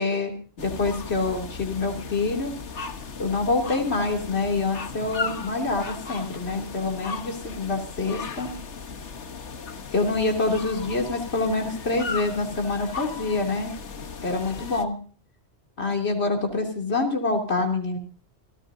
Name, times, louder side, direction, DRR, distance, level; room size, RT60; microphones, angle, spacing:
voice 1, 0.0-2.5 3.2-8.5 9.9-13.7 14.2-15.0 15.8-18.0, left 3 dB, 65° left, 1 dB, 3.3 m, -26 dB
sound 1, 0.6-14.8, left 4 dB, 80° left, 1.6 m, -36 dB
28.5 x 14.5 x 2.7 m, 0.40 s
omnidirectional pair, 1.2 m